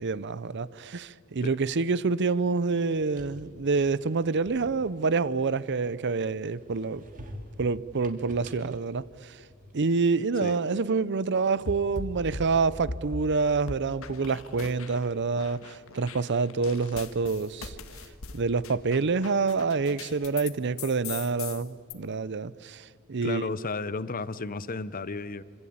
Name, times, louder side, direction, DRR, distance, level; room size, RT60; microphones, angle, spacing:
voice 1, 0.0-7.0 7.6-9.4 9.7-17.8 18.3-23.5, right 4 dB, 55° right, 0.6 m, -27 dB
sound 1, 2.8-6.0 6.5-9.9, equal, 40° right, 3.1 m, -48 dB
sound 2, 11.7-13.3 13.7-15.1 15.4-20.5 20.8-21.9, left 3 dB, 65° left, 1.8 m, -39 dB
voice 2, 23.2-25.4, left 3 dB, 40° left, 0.8 m, -33 dB
26.5 x 26.0 x 8.7 m
head